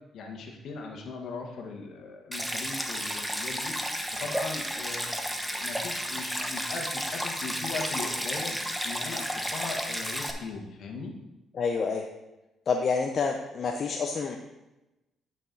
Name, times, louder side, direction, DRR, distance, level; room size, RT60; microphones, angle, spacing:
voice 1, 0.1-3.7 4.2-5.2 5.6-8.5 8.8-11.1, left 4 dB, 70° left, 2 dB, 1.5 m, -39 dB
Stream, 2.3-10.3, equal, ahead, 1.0 m, -32 dB
voice 2, 11.5-12.1 12.7-14.4, left 5 dB, 50° left, 3 dB, 0.7 m, -28 dB
9.8 x 6.1 x 3.9 m, 1.0 s
cardioid pair, 90°, 0 cm